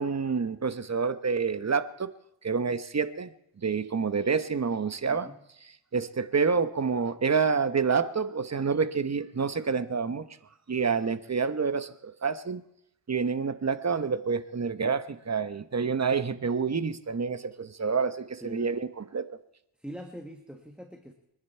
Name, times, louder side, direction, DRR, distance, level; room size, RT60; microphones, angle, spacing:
voice 1, 0.0-2.1 2.4-3.3 3.6-5.3 5.9-10.3 10.7-12.6 13.1-19.4, right 5 dB, 30° right, 12 dB, 1.0 m, -28 dB
voice 2, 18.4-18.7 19.8-21.1, right 1 dB, ahead, 4 dB, 1.7 m, -42 dB
28.5 x 10.5 x 4.5 m, 0.78 s
cardioid pair, 75°, 50 cm